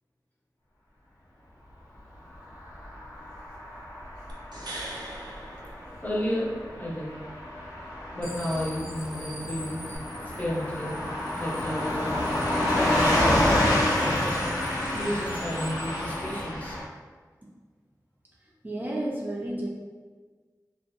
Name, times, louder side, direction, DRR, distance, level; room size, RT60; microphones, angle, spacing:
Car passing by / Truck, 2.5-16.8, left 1 dB, 85° left, 0.6 m, -29 dB
sound 1, 4.3-6.6 9.9-10.0, right 1 dB, 80° right, 0.5 m, -41 dB
voice 1, 6.0-7.1 8.1-9.8 10.4-11.0 11.4-12.3 12.5-13.5 14.0-14.5 14.9-16.8, equal, 20° left, -5 dB, 0.7 m, -32 dB
sound 2, 8.2-16.4, equal, 60° left, 1.0 m, -43 dB
voice 2, 18.6-19.7, right 1 dB, 25° right, -4 dB, 0.4 m, -31 dB
2.4 x 2.2 x 2.7 m, 1.4 s
wide cardioid pair, 45°, 7 cm